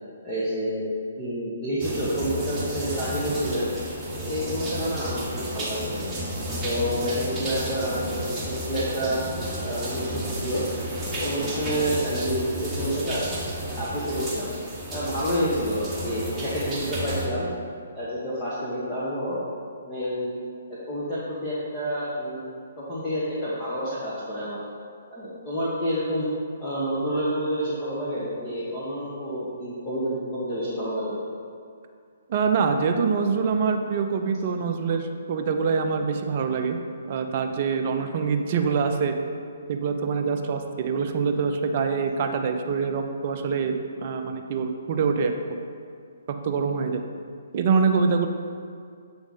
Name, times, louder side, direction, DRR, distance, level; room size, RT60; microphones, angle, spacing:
voice 1, 0.2-0.8 1.2-3.7 4.2-6.0 6.6-9.2 9.6-10.6 11.2-13.2 13.8-14.5 14.9-17.5 17.9-19.4 19.9-20.3 20.9-24.6 25.1-26.3 26.6-31.2, equal, 20° left, -10 dB, 1.1 m, -29 dB
sound 1, 1.8-17.3, right 1 dB, 10° right, 1.1 m, -32 dB
voice 2, 32.3-36.8 37.1-39.1 39.7-45.6 46.4-47.0 47.5-48.3, right 5 dB, 40° right, 5 dB, 0.5 m, -25 dB
7.2 x 3.5 x 4.1 m, 2.2 s
figure-of-eight pair, 130°, 0 cm